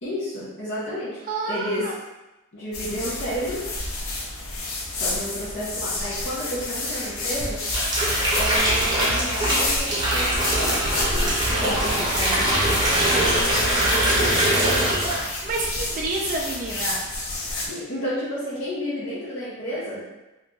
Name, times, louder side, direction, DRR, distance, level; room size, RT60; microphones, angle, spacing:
voice 1, 0.0-1.2 1.5-1.9 2.5-3.7 4.9-7.6 8.4-10.8 11.5-14.9 17.6-20.1, equal, 60° left, -10 dB, 0.9 m, -31 dB
voice 2, 1.3-1.9 12.0-12.3 15.4-17.0, right 3 dB, 40° right, -2 dB, 0.3 m, -29 dB
sound 1, 2.7-17.7, left 2 dB, 85° left, 0.7 m, -30 dB
sound 2, 7.4-15.4 15.7-16.1, right 1 dB, 20° right, 0.9 m, -22 dB
2.9 x 2.7 x 3.7 m, 1.0 s
head